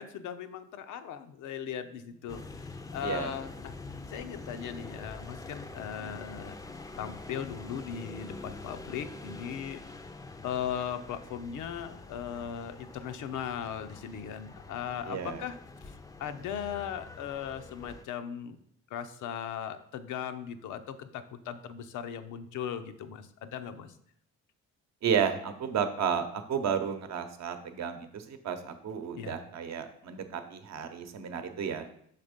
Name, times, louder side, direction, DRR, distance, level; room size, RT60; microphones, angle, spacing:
voice 1, 0.0-3.7 4.1-6.6 7.0-9.8 10.4-15.6 15.8-18.6 18.9-24.0 29.2-29.4, left 8 dB, 80° left, 9 dB, 0.6 m, -38 dB
sound 1, 2.3-18.0, left 3 dB, 10° left, 0.4 m, -45 dB
voice 2, 3.0-3.3 15.1-15.4 25.0-31.9, right 7 dB, 60° right, 8 dB, 0.8 m, -32 dB
5.8 x 3.5 x 5.1 m, 0.68 s
cardioid pair, 90°, 30 cm